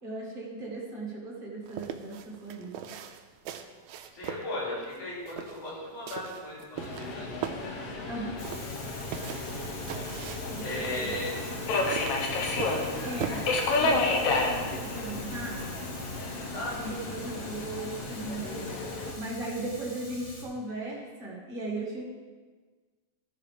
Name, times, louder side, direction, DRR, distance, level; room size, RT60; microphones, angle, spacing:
voice 1, 0.0-2.7 8.1-8.4 10.5-11.1 13.0-13.5 13.8-15.7 16.7-18.7 19.1-22.0, right 2 dB, 25° right, -4 dB, 1.3 m, -37 dB
sound 1, 1.6-13.3, right 9 dB, 80° right, 1.8 m, -40 dB
voice 2, 4.1-7.5 10.6-11.3 12.2-12.3 16.5-17.0 17.4-17.5, left 1 dB, 85° left, -5 dB, 4.4 m, -37 dB
Subway metro underground, 6.8-19.1, left 3 dB, 60° left, 1.8 m, -32 dB
Fire, 8.4-20.4, left 1 dB, 30° left, 1.9 m, -43 dB
12.5 x 5.7 x 5.0 m, 1.4 s
omnidirectional pair, 3.4 m